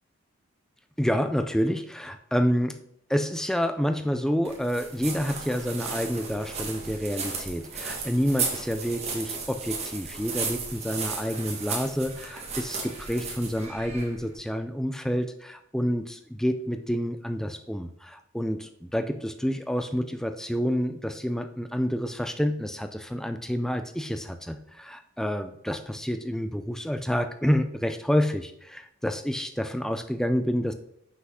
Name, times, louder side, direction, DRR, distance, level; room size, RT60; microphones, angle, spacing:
voice 1, 1.0-2.8 3.1-30.7, equal, ahead, 9 dB, 0.4 m, -28 dB
sound 1, 4.5-14.3, right 4 dB, 30° right, 1.4 m, -35 dB
6.1 x 5.7 x 6.2 m, 0.74 s
head